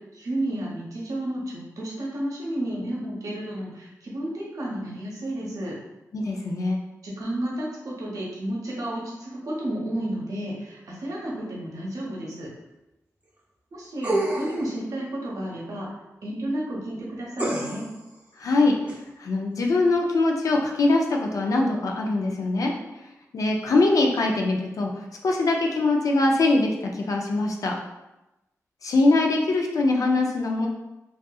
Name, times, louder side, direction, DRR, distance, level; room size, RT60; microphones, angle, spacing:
voice 1, 0.1-5.8 7.0-12.5 13.7-15.9 16.2-17.8, right 1 dB, 75° right, -4 dB, 0.8 m, -32 dB
voice 2, 6.1-6.8 18.4-18.8 19.2-22.7 23.3-27.7 28.8-30.7, left 2 dB, 70° left, 1 dB, 0.4 m, -22 dB
sound 1, 14.0-14.7 17.4-18.0 18.9-19.0, right 1 dB, 25° right, 0.5 m, -27 dB
2.6 x 2.4 x 2.3 m, 0.98 s
wide cardioid pair, 95°, 6 cm